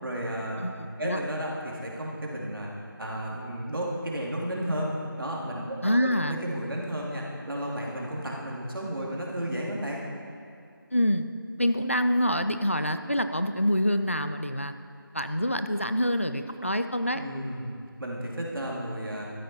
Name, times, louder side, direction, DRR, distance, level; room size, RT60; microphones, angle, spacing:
voice 1, 0.0-0.6 1.0-2.7 3.0-10.0 17.1-17.7 18.0-19.3, equal, 70° right, -3 dB, 2.8 m, -33 dB
voice 2, 0.6-1.2 5.8-6.4 10.9-11.3 11.6-14.7 15.1-17.2, equal, 35° left, 9 dB, 0.4 m, -26 dB
13.0 x 9.9 x 4.4 m, 2.3 s
figure-of-eight pair, 175°, 12 cm